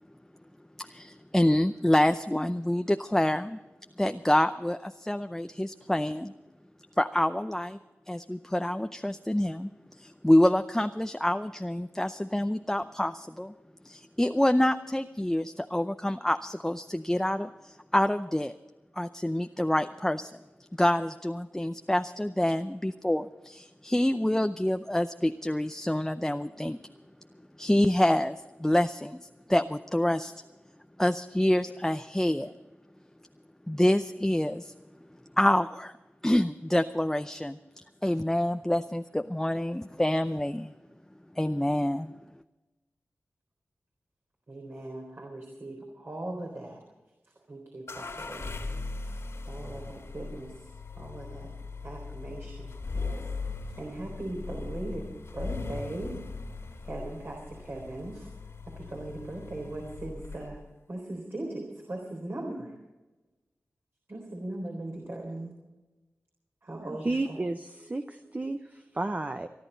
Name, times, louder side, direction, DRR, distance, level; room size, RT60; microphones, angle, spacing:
voice 1, 0.8-3.6 4.0-6.3 7.0-7.8 8.1-9.7 10.0-13.5 13.8-18.5 19.0-20.3 20.8-26.8 27.6-30.3 31.0-32.5 33.7-34.7 35.4-35.9 36.2-37.6 38.0-40.7 41.4-42.1, left 1 dB, 10° left, 8 dB, 0.5 m, -27 dB
voice 2, 44.5-46.8 47.2-48.7 49.0-49.2 49.5-51.5 51.8-53.3 53.8-55.1 55.3-56.2 56.8-58.3 58.7-60.6 60.9-62.8 64.1-65.5 66.6-67.4, right 1 dB, 50° right, 0 dB, 3.8 m, -39 dB
sound 1, 47.9-60.7, left 3 dB, 70° left, 2.2 m, -39 dB
voice 3, 66.9-69.5, right 2 dB, 30° right, 7 dB, 0.8 m, -32 dB
24.5 x 11.5 x 4.0 m, 1.1 s
wide cardioid pair, 60°, 5 cm